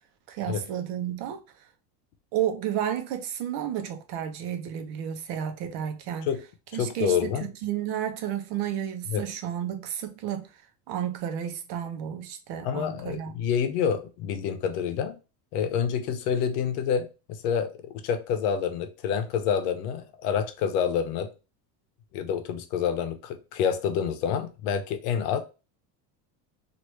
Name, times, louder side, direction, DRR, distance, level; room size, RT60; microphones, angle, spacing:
voice 1, 0.3-1.4 2.3-6.3 6.7-10.5 10.9-13.3, right 10 dB, 55° right, 0.8 m, -32 dB
voice 2, 6.7-7.5 9.1-9.2 12.6-15.2 15.5-21.3 22.1-25.4, left 7 dB, 75° left, 0.8 m, -28 dB
3.0 x 2.6 x 3.1 m
supercardioid pair, 140°, 47 cm